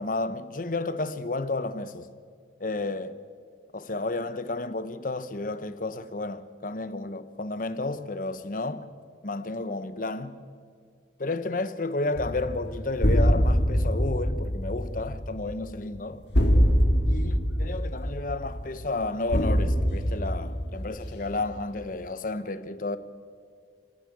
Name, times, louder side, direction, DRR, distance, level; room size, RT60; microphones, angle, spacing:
voice 1, 0.0-2.1 2.6-3.2 3.7-8.9 9.2-10.4 11.2-16.3 17.1-23.0, left 2 dB, 45° left, 0.8 m, -32 dB
sound 1, 12.2-21.6, equal, 70° left, 2.0 m, -24 dB
29.5 x 10.5 x 8.5 m
head